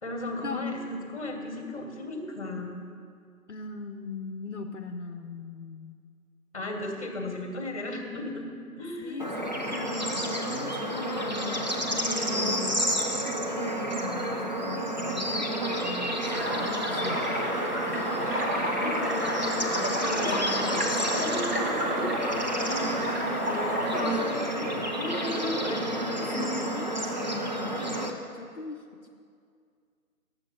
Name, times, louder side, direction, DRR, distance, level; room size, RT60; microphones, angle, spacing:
voice 1, 0.0-2.8 6.5-9.3 20.1-21.5 22.5-26.6, left 2 dB, 25° left, 3 dB, 1.2 m, -35 dB
voice 2, 3.5-5.9 9.0-12.8 13.5-17.2 18.8-20.9 26.4-28.1 28.3-29.1, left 4 dB, 55° left, 5 dB, 0.7 m, -39 dB
Bird / Insect / Frog, 9.2-28.1, right 1 dB, 30° right, 0.6 m, -30 dB
sound 1, 16.3-24.0, equal, 90° right, 2.5 m, -31 dB
10.5 x 7.4 x 6.9 m, 2.3 s
figure-of-eight pair, 160°, 44 cm